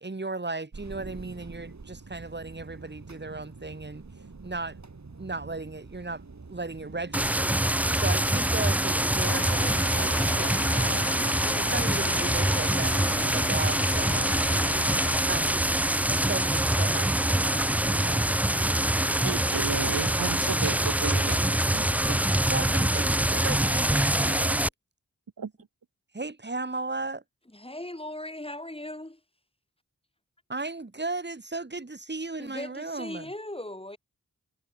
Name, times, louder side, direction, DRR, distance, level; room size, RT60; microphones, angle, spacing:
voice 1, 0.0-4.0 4.4-4.8 5.2-6.2 6.5-7.6 7.9-11.1 11.5-14.7 15.3-15.7 16.1-18.3 22.3-24.7 26.1-27.2 30.5-33.3, right 3 dB, 30° right, 2.5 m, -36 dB
sound 1, 0.7-20.5, right 4 dB, 55° right, 3.8 m, -46 dB
sound 2, 7.1-24.7, right 1 dB, 5° right, 0.4 m, -25 dB
sound 3, 9.2-15.2, left 5 dB, 80° left, 3.3 m, -37 dB
voice 2, 19.2-22.4 25.4-25.5, right 6 dB, 80° right, 1.9 m, -34 dB
voice 3, 27.5-29.2 32.4-34.0, left 1 dB, 15° left, 3.5 m, -38 dB
cardioid pair, 45°, 33 cm